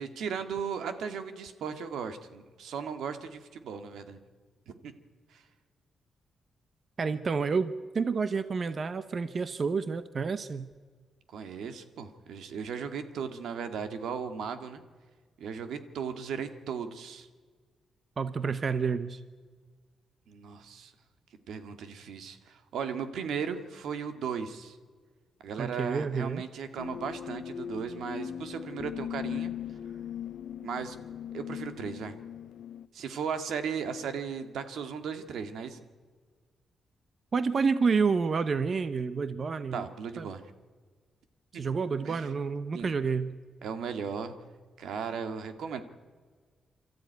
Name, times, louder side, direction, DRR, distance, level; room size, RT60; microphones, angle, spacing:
voice 1, 0.0-4.2 4.8-4.9 5.3-5.4 11.3-14.8 15.4-17.3 20.3-20.9 21.5-24.8 25.4-29.5 30.6-31.0 31.3-32.2 32.9-35.9 39.7-40.4 41.5-41.7 42.0-42.3 42.7-42.9 43.6-44.4 44.8-45.8, right 6 dB, 85° right, 9 dB, 1.9 m, -36 dB
voice 2, 7.0-10.7 18.2-19.2 25.6-26.4 37.3-39.9 40.2-40.3 41.5-43.4, right 5 dB, 35° right, 12 dB, 0.7 m, -29 dB
sound 1, 26.8-32.9, left 9 dB, 65° left, 0.6 m, -39 dB
28.5 x 13.5 x 9.4 m, 1.5 s
wide cardioid pair, 155°, 0 cm